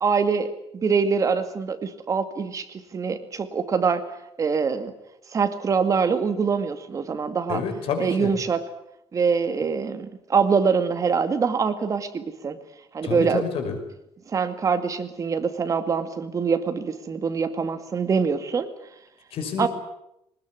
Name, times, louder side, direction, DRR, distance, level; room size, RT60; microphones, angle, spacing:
voice 1, 0.0-4.1 4.4-4.9 5.3-7.6 8.0-8.6 9.1-12.6 12.9-13.4 14.3-18.7 19.6-19.7, right 5 dB, 35° right, 8 dB, 2.2 m, -24 dB
voice 2, 7.5-8.3 13.0-13.8 19.3-19.7, left 6 dB, 75° left, 6 dB, 5.7 m, -28 dB
21.0 x 20.0 x 9.9 m, 0.80 s
cardioid pair, 150°, 10 cm